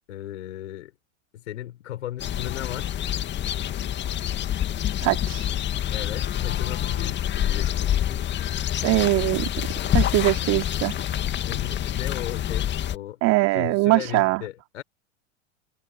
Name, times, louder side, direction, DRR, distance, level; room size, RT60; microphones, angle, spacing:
voice 1, 0.1-0.9 1.3-2.9 5.9-8.3 11.3-13.2 13.5-14.8, left 13 dB, 65° left, 5.9 m, -36 dB
sound 1, 2.2-13.0, left 11 dB, 25° left, 2.1 m, -27 dB
voice 2, 5.0-5.5 8.8-9.5 9.9-10.9 13.2-14.4, right 22 dB, 40° right, 2.7 m, -21 dB
figure-of-eight pair, 90°, 39 cm